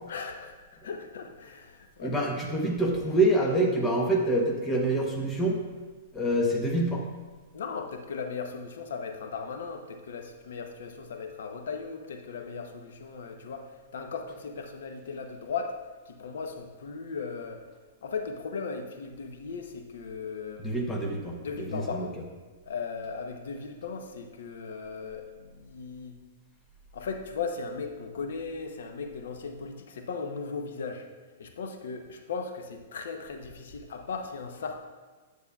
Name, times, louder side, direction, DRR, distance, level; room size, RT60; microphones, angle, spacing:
voice 1, 0.1-2.6 7.5-15.8 16.1-17.6 18.0-20.7 21.4-22.2 22.6-26.2 26.9-31.1 31.4-34.8, left 5 dB, 75° left, 5 dB, 0.8 m, -37 dB
voice 2, 2.0-5.6 6.1-7.0 20.6-22.0, right 1 dB, 10° left, 0 dB, 1.0 m, -26 dB
9.2 x 8.2 x 2.3 m, 1.4 s
hypercardioid pair, 155°, 0 cm